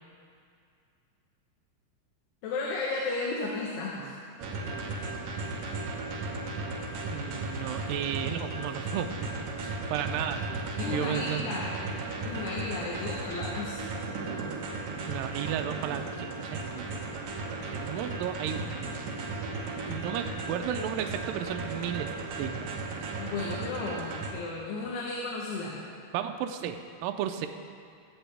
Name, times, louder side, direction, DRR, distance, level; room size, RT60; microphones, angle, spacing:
voice 1, 2.4-4.1 10.8-11.8 12.2-13.8 23.2-25.8, left 3 dB, 90° left, -4 dB, 3.3 m, -34 dB
sound 1, 4.4-24.3, right 3 dB, 65° right, 1.9 m, -35 dB
voice 2, 7.1-10.4 10.9-11.5 15.1-17.0 17.7-18.6 19.9-22.1 22.4-22.7 26.1-27.5, right 9 dB, 90° right, 6 dB, 2.0 m, -34 dB
22.0 x 8.0 x 3.4 m, 2.4 s
omnidirectional pair, 4.6 m